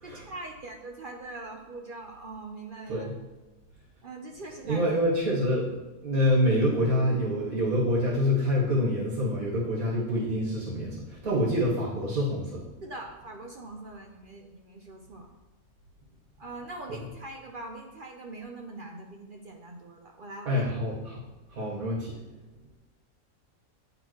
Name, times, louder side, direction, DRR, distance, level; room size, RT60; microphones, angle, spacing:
voice 1, 0.0-3.1 4.0-5.0 12.8-15.3 16.4-20.8, right 2 dB, 55° right, 1 dB, 0.6 m, -42 dB
voice 2, 4.6-5.8 6.0-12.6 16.9-17.0 20.5-21.2 21.5-22.2, equal, 85° right, -5 dB, 2.0 m, -26 dB
11.0 x 3.8 x 3.1 m, 1.1 s
omnidirectional pair, 1.5 m